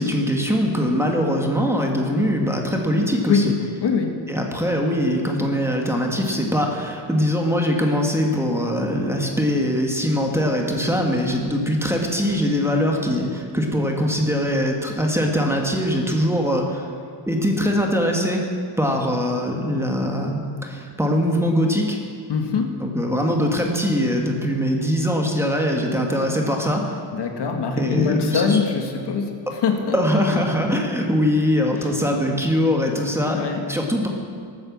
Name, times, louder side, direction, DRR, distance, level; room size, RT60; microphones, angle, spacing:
voice 1, 0.0-3.5 4.3-16.8 17.3-18.4 18.8-22.0 22.8-27.0 27.8-28.6 29.9-33.4 33.7-34.1, equal, 5° right, 1 dB, 1.6 m, -22 dB
voice 2, 3.8-4.2 22.3-22.7 27.1-30.2 33.3-33.7, left 5 dB, 60° left, 3 dB, 1.8 m, -23 dB
19.5 x 9.0 x 7.3 m, 2.2 s
wide cardioid pair, 155°, 46 cm